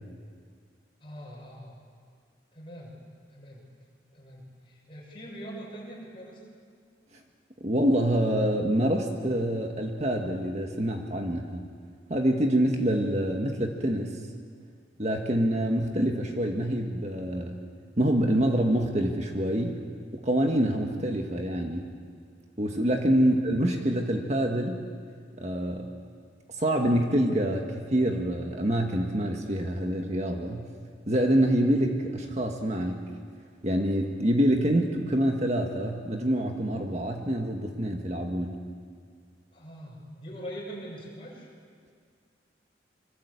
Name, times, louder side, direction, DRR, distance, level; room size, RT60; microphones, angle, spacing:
voice 1, 1.0-1.8 2.5-2.9 3.3-3.6 4.1-6.4 23.2-23.4 39.5-41.5, equal, 30° left, -2 dB, 7.2 m, -42 dB
voice 2, 7.6-11.7 12.1-14.2 15.0-17.6 18.0-19.8 20.1-21.9 22.6-24.8 25.4-25.9 26.6-30.7 31.1-33.1 33.6-38.6, right 1 dB, 35° right, 2 dB, 1.8 m, -26 dB
27.0 x 25.0 x 8.4 m, 2.1 s
head